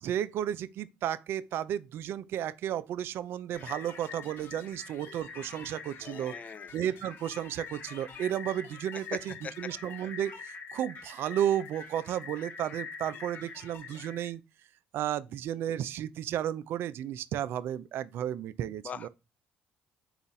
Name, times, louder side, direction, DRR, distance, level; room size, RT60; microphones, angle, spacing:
voice 1, 0.0-6.3 6.7-14.4 14.9-19.1, right 11 dB, 65° right, 0.3 m, -33 dB
sound 1, 3.5-14.3, left 5 dB, 55° left, 0.9 m, -45 dB
voice 2, 6.0-6.7 9.4-9.5 18.8-19.1, left 6 dB, 35° left, 0.4 m, -42 dB
3.9 x 2.4 x 3.9 m
supercardioid pair, 70°, 4 cm